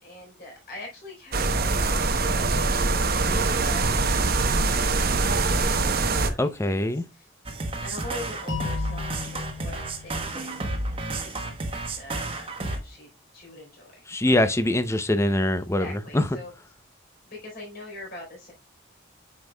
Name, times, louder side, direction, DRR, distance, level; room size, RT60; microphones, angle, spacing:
voice 1, 0.0-6.9 7.8-10.7 11.2-13.1 13.3-14.0 15.8-16.5 17.3-18.5, left 1 dB, 50° left, 3.9 m, -43 dB
sound 1, 1.3-6.3, right 3 dB, 45° right, 0.9 m, -23 dB
voice 2, 6.4-7.0 14.1-16.3, left 1 dB, 15° left, 0.5 m, -23 dB
sound 2, 7.5-12.8, right 2 dB, 25° right, 1.2 m, -31 dB
sound 3, 8.5-11.4, left 8 dB, 65° left, 4.7 m, -39 dB
8.5 x 6.3 x 2.2 m
head